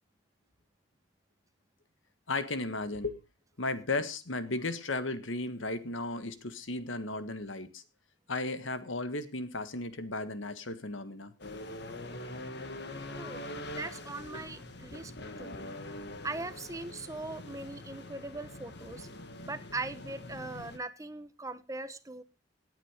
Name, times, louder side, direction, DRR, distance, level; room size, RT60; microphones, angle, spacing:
voice 1, 2.3-3.2 3.6-7.8 8.3-11.3 15.5-15.7, left 2 dB, 85° left, 1.7 m, -35 dB
sound 1, 11.4-20.8, left 1 dB, 60° left, 1.7 m, -43 dB
voice 2, 13.7-15.1 15.4-15.6 16.2-19.1 19.4-22.2, right 2 dB, 15° right, 1.0 m, -40 dB
17.5 x 9.0 x 5.0 m
head